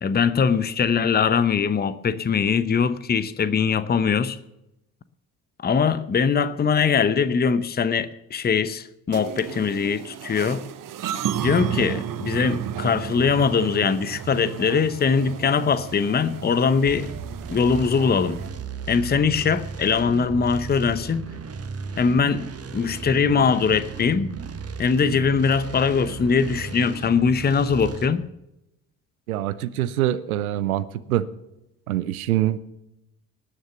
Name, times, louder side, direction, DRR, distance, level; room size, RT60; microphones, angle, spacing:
voice 1, 0.0-4.4 5.6-10.6 11.4-17.1 17.5-18.4 18.9-21.3 22.0-22.5 22.7-24.3 24.8-28.2, left 6 dB, 25° left, 15 dB, 0.8 m, -21 dB
sound 1, 9.1-18.5, right 10 dB, 50° right, 1.1 m, -33 dB
sound 2, 16.9-28.1, right 5 dB, 35° right, 1.6 m, -35 dB
voice 2, 29.3-31.3 31.9-32.6, right 13 dB, 90° right, 16 dB, 0.6 m, -24 dB
19.0 x 6.5 x 7.1 m, 0.90 s
hypercardioid pair, 55°, 42 cm